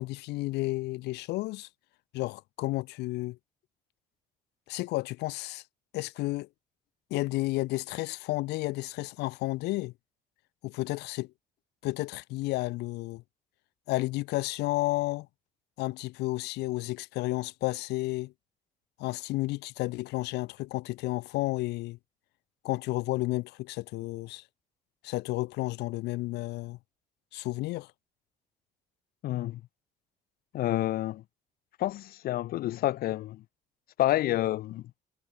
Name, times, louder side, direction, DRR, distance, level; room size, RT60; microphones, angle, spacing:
voice 1, 0.0-1.7 2.1-3.4 4.7-5.6 5.9-6.5 7.1-9.9 10.6-11.3 11.8-13.2 13.9-15.3 15.8-18.3 19.0-22.0 22.6-24.4 25.0-26.8 27.3-27.9, left 20 dB, 85° left, 0.8 m, -32 dB
voice 2, 29.2-29.6 30.5-31.2 31.8-33.4 34.0-34.8, left 15 dB, 60° left, 0.5 m, -28 dB
cardioid pair, 110°, 17 cm